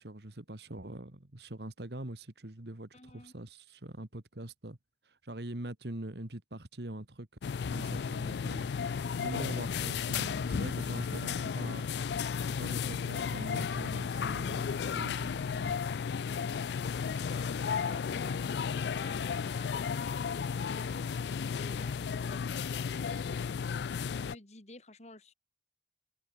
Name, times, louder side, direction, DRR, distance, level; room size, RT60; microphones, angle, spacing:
voice 1, 0.0-4.8 5.1-7.3 7.7-11.9 12.4-15.7, right 1 dB, 70° right, 1.9 m, -43 dB
voice 2, 2.9-3.4 15.4-16.0 16.9-23.9 24.2-25.3, left 2 dB, 40° left, 2.5 m, -52 dB
sound 1, 7.4-24.4, left 6 dB, 70° left, 0.4 m, -34 dB
head